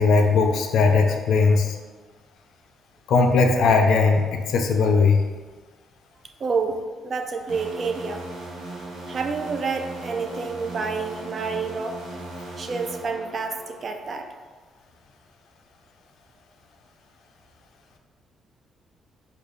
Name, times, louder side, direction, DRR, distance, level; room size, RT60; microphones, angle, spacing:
voice 1, 0.0-1.8 3.1-5.2, left 4 dB, 75° left, 4 dB, 0.3 m, -19 dB
voice 2, 6.4-8.2 9.1-12.0 12.6-14.3, right 4 dB, 45° right, 5 dB, 0.3 m, -28 dB
sound 1, 7.5-14.0, right 1 dB, 90° right, 0.8 m, -38 dB
3.3 x 2.2 x 3.7 m, 1.4 s
cardioid pair, 90°, 0 cm